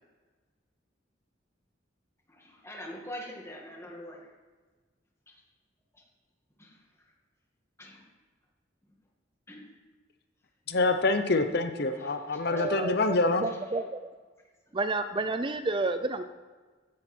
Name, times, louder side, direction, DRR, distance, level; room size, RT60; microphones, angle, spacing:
voice 1, 2.3-4.3 6.6-6.8 7.8-8.0 9.5-9.7 12.0-12.7 13.5-13.6, left 1 dB, 15° left, 2.1 m, -44 dB
voice 2, 10.7-13.5, left 2 dB, 60° left, 0.9 m, -26 dB
voice 3, 12.5-14.0 14.7-16.2, right 3 dB, 25° right, 0.5 m, -31 dB
16.0 x 10.5 x 4.5 m
head